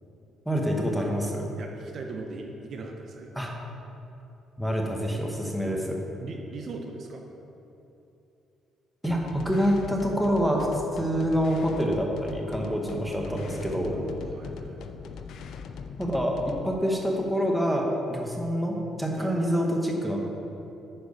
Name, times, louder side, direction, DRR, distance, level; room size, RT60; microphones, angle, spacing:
voice 1, 0.5-1.4 3.3-3.5 4.6-6.0 9.0-10.7 10.9-14.0 16.0-20.2, equal, ahead, -1 dB, 0.9 m, -26 dB
voice 2, 1.6-3.4 6.2-7.2 13.2-14.8 19.2-19.3, right 3 dB, 45° right, 2 dB, 0.7 m, -39 dB
sound 1, 9.0-16.7, left 6 dB, 60° left, 0.4 m, -40 dB
9.6 x 4.4 x 5.2 m, 2.8 s
cardioid pair, 155°, 0 cm